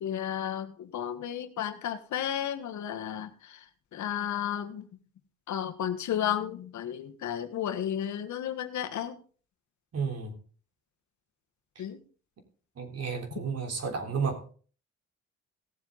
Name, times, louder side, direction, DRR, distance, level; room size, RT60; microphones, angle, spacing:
voice 1, 0.0-3.6 3.9-4.8 5.5-9.2 11.8-12.0, left 10 dB, 70° left, 1.4 m, -33 dB
voice 2, 9.9-10.3 11.8-11.9 12.8-14.4, right 5 dB, 55° right, 3.6 m, -32 dB
17.5 x 7.5 x 4.0 m
cardioid pair, 90°, 30 cm